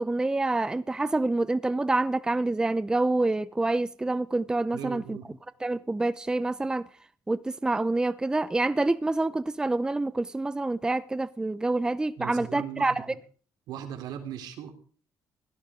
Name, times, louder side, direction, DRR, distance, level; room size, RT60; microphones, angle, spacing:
voice 1, 0.0-5.2 5.6-6.9 7.3-13.1, right 2 dB, 10° right, 0.6 m, -27 dB
voice 2, 4.7-5.3 12.2-13.1 13.7-14.7, right 9 dB, 80° right, 3.2 m, -38 dB
16.5 x 13.5 x 5.0 m
cardioid pair, 120°, 7 cm